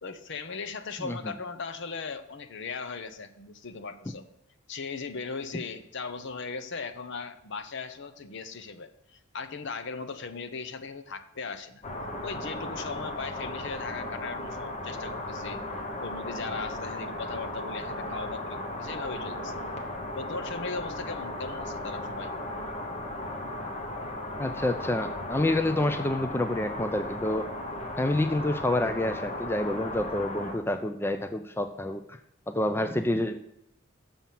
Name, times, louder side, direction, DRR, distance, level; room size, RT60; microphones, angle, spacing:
voice 1, 0.0-4.3 4.7-11.8 12.2-15.6 16.0-19.5 20.1-22.3, left 4 dB, 60° left, 11 dB, 0.7 m, -38 dB
sound 1, 11.8-30.5, left 1 dB, 30° left, 1.2 m, -36 dB
voice 2, 24.4-27.5 28.0-32.2 32.5-33.4, left 1 dB, 10° left, 8 dB, 0.4 m, -28 dB
7.0 x 5.6 x 7.4 m, 0.79 s
head